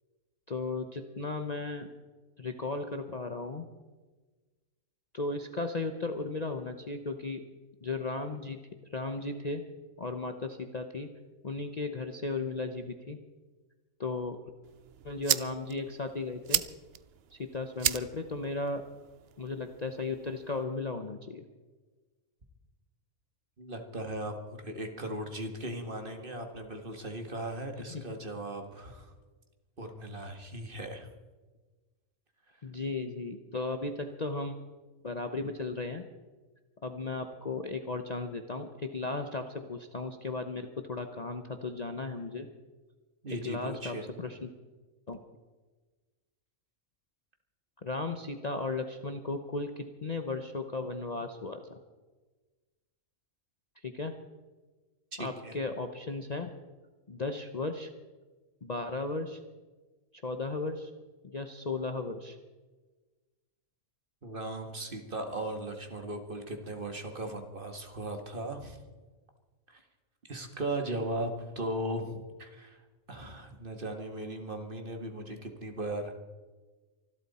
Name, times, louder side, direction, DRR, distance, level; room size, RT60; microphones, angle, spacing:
voice 1, 0.5-1.9 2.4-3.6 5.1-7.4 7.8-8.6 8.9-9.6 10.0-11.1 11.4-13.2 14.0-14.4 15.0-16.6 17.3-18.8 19.4-21.4 27.9-28.0 32.6-34.5 35.0-36.0 36.8-42.5 43.4-44.5 45.1-45.2 47.8-51.8 53.8-54.1 55.2-56.5 57.1-57.9 58.6-59.4 60.2-60.9 61.2-62.4, left 3 dB, 35° left, 5 dB, 0.8 m, -35 dB
sound 1, 14.6-20.6, right 11 dB, 60° right, 0.7 m, -36 dB
voice 2, 23.6-29.1 29.8-31.1 43.2-44.1 55.1-55.6 64.2-68.8 69.7-69.8 70.3-72.8 73.1-76.1, right 1 dB, 40° right, 5 dB, 1.9 m, -37 dB
25.0 x 12.0 x 4.2 m, 1.3 s
omnidirectional pair, 1.5 m